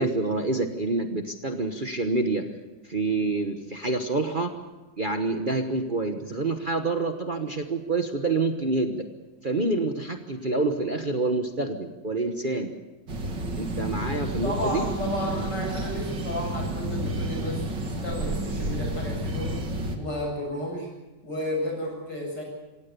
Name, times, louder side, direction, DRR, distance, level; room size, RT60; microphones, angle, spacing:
voice 1, 0.0-2.4 2.9-4.5 5.0-9.0 9.4-12.7 13.6-14.8, right 3 dB, 30° right, 5 dB, 1.2 m, -27 dB
sound 1, 13.1-20.0, right 1 dB, 80° right, 2.9 m, -30 dB
voice 2, 14.4-19.5 20.0-20.9 21.2-22.4, left 1 dB, 70° left, -1 dB, 8.9 m, -32 dB
26.5 x 17.5 x 6.8 m, 1.1 s
omnidirectional pair, 1.9 m